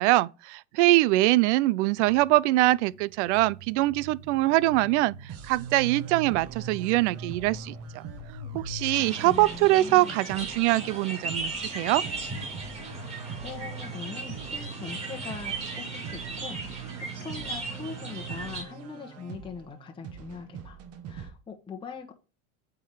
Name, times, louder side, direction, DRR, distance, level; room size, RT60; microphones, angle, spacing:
voice 1, 0.0-8.1 8.5-12.0, right 18 dB, 60° right, 0.5 m, -23 dB
sound 1, 2.0-9.7, right 2 dB, 85° right, 2.0 m, -42 dB
sound 2, 5.3-21.3, right 7 dB, 35° right, 1.3 m, -45 dB
sound 3, 8.9-18.6, right 3 dB, 15° right, 3.3 m, -36 dB
voice 2, 9.2-10.2 12.9-16.9 17.2-20.8 21.1-22.1, left 5 dB, 10° left, 1.1 m, -41 dB
8.7 x 3.7 x 4.8 m
supercardioid pair, 135°, 41 cm